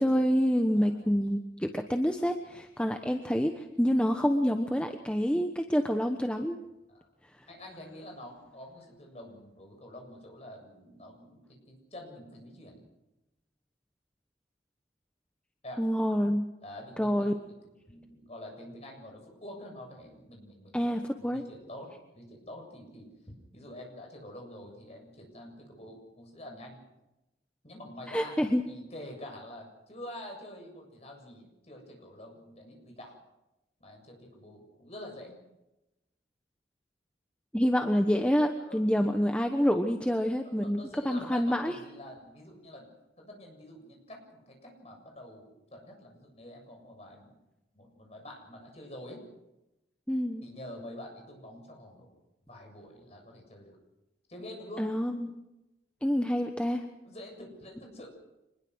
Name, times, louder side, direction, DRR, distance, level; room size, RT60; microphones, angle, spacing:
voice 1, 0.0-6.6 15.8-16.4 17.0-17.4 20.7-21.4 28.1-28.6 37.5-40.8 41.0-41.7 50.1-50.4 54.8-55.4 56.0-56.8, equal, 5° left, 5 dB, 1.1 m, -27 dB
voice 2, 0.8-1.1 6.9-7.1 7.5-12.8 15.6-15.8 16.6-20.8 21.2-26.8 27.6-33.2 33.8-35.4 38.6-38.9 40.6-42.9 43.2-47.3 47.7-49.2 50.4-52.2 52.5-53.8 54.3-54.9 57.0-58.1, left 1 dB, 35° left, 2 dB, 7.3 m, -47 dB
25.5 x 21.0 x 6.4 m, 0.95 s
head